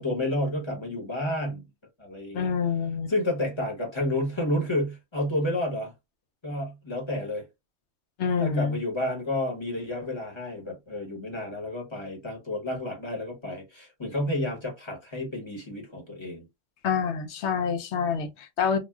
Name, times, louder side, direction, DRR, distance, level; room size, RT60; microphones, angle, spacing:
voice 1, 0.0-1.7 2.0-2.5 3.1-5.9 6.4-7.4 8.4-16.4, left 1 dB, 25° left, 1.0 m, -30 dB
voice 2, 2.3-3.1 8.2-8.8 16.8-18.8, left 6 dB, 75° left, 0.9 m, -27 dB
3.5 x 2.4 x 2.3 m
omnidirectional pair, 1.2 m